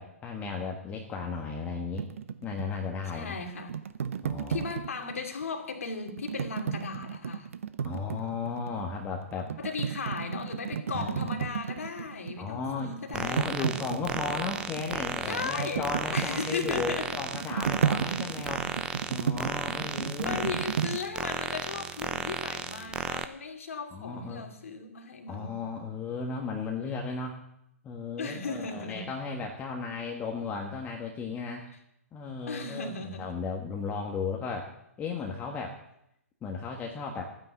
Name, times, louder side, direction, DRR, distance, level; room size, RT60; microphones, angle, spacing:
voice 1, 0.0-2.0 2.4-3.3 4.2-4.6 7.8-9.5 10.9-11.1 12.4-18.7 19.1-20.4 23.9-24.4 25.3-27.4 27.8-31.6 32.1-34.7 35.0-35.8 36.4-37.2, left 4 dB, 20° left, 1 dB, 1.5 m, -35 dB
sound 1, 2.0-5.4 6.1-8.8 9.2-12.5 12.7-21.0, right 7 dB, 60° right, 0.8 m, -33 dB
voice 2, 3.0-3.7 4.5-7.5 9.6-13.7 15.2-17.2 18.0-18.2 18.5-18.6 20.2-25.6 28.2-29.1 32.5-33.4, left 4 dB, 65° left, 4 dB, 2.6 m, -36 dB
sound 2, 13.1-23.3, right 5 dB, 10° right, 0.7 m, -34 dB
13.5 x 9.7 x 7.2 m, 0.79 s
figure-of-eight pair, 120°, 8 cm